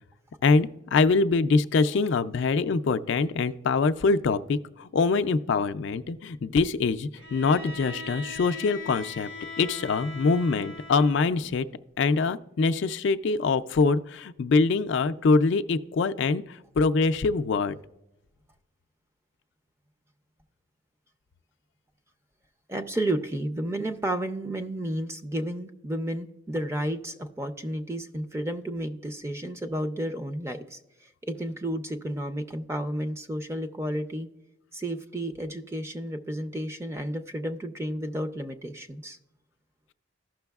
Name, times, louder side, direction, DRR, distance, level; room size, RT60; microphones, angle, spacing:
voice 1, 0.4-9.3 9.6-11.7 12.0-17.8, left 4 dB, 55° left, 10 dB, 0.3 m, -24 dB
Bowed string instrument, 7.2-11.5, left 3 dB, 65° right, 1.3 m, -40 dB
voice 2, 22.7-30.8 31.2-34.3 34.7-39.2, right 1 dB, 15° right, 8 dB, 0.4 m, -32 dB
15.0 x 6.0 x 2.3 m, 0.91 s
head